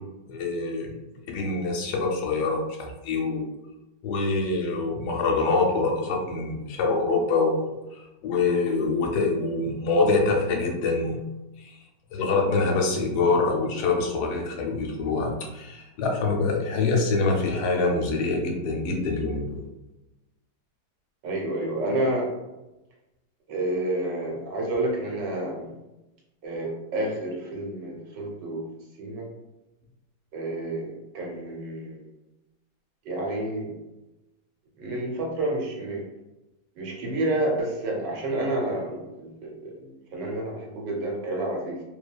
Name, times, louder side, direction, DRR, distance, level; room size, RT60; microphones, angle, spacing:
voice 1, 0.3-0.9 1.3-3.5 4.0-11.2 11.6-11.8 12.1-19.6, left 3 dB, 75° left, 0 dB, 1.1 m, -25 dB
voice 2, 21.2-22.3 23.5-25.7 26.4-28.7 29.0-29.3 30.3-32.0 33.0-33.7 34.8-36.0 36.7-41.8, right 1 dB, 75° right, -1 dB, 1.4 m, -29 dB
2.9 x 2.2 x 2.2 m, 0.97 s
omnidirectional pair, 1.9 m